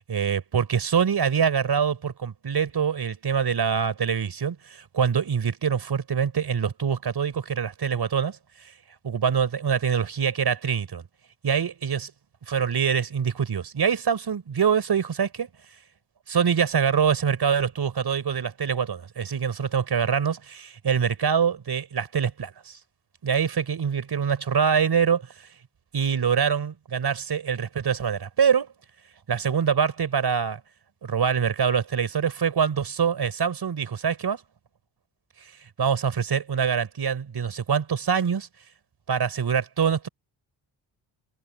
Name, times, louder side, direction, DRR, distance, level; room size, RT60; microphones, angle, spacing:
voice 1, 0.1-8.4 9.0-11.0 11.4-12.1 12.5-15.5 16.3-22.8 23.2-25.2 25.9-28.7 29.3-30.6 31.0-34.4 35.8-38.5 39.1-40.1, right 7 dB, 55° right, 4.4 m, -24 dB
supercardioid pair, 55°, 48 cm